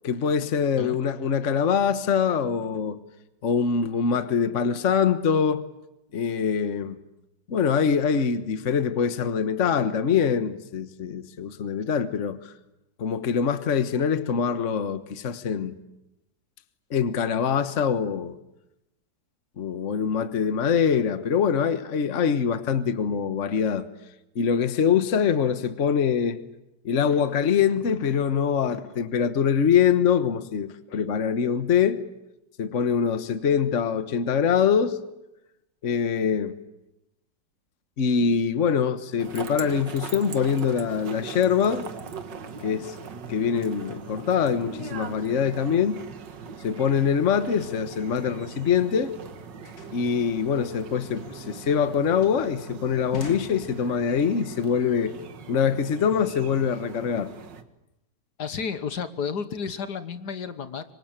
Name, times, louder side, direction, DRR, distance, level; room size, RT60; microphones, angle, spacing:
voice 1, 0.0-3.0 3.4-5.6 6.1-7.0 7.5-12.5 13.0-15.7 16.9-18.3 19.6-23.9 24.3-26.4 26.8-32.0 32.6-35.0 35.8-36.5 38.0-41.9 42.6-43.0 43.3-46.0 46.6-49.1 49.9-55.2 55.5-57.3, left 7 dB, 45° left, 1.5 m, -24 dB
sound 1, 39.2-57.6, right 6 dB, 90° right, 2.2 m, -41 dB
sound 2, 49.6-54.2, left 2 dB, 90° left, 3.9 m, -45 dB
voice 2, 58.4-60.9, left 6 dB, 70° left, 1.8 m, -32 dB
26.5 x 24.5 x 8.9 m
omnidirectional pair, 1.9 m